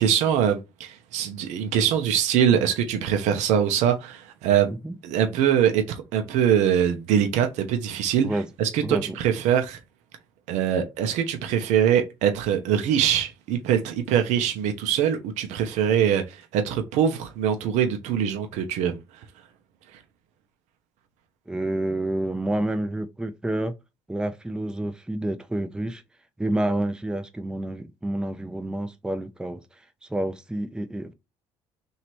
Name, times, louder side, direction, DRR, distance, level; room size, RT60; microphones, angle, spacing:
voice 1, 0.0-4.7 5.0-8.3 8.6-9.8 10.5-19.0, right 9 dB, 75° right, 0.7 m, -23 dB
voice 2, 8.8-9.2 21.5-23.7 24.1-26.0 26.4-29.6 30.1-31.1, right 1 dB, 5° right, 0.5 m, -28 dB
3.0 x 2.7 x 4.5 m
supercardioid pair, 70°, 12 cm